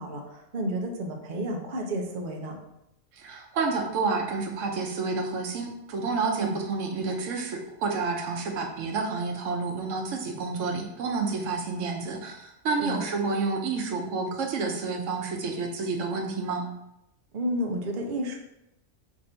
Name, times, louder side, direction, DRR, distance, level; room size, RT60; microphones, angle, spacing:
voice 1, 0.0-2.6 6.4-6.6 12.8-13.0 17.3-18.4, equal, 50° right, 1 dB, 0.7 m, -31 dB
voice 2, 3.2-16.6, right 4 dB, 85° right, 2 dB, 1.0 m, -29 dB
3.7 x 2.6 x 4.3 m, 0.83 s
omnidirectional pair, 1.3 m